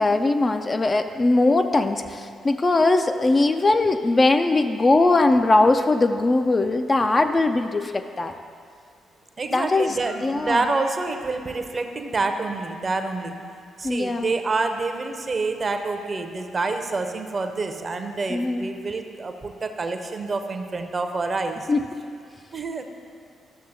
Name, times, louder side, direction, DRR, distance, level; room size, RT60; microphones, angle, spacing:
voice 1, 0.0-8.3 9.5-10.7 13.8-14.3 18.3-18.7 21.7-21.8, left 2 dB, 30° left, 7 dB, 0.3 m, -20 dB
voice 2, 9.4-13.3 13.8-21.7 22.5-22.8, right 3 dB, 35° right, 6 dB, 0.6 m, -27 dB
13.5 x 6.7 x 2.6 m, 2.3 s
figure-of-eight pair, 40°, 0 cm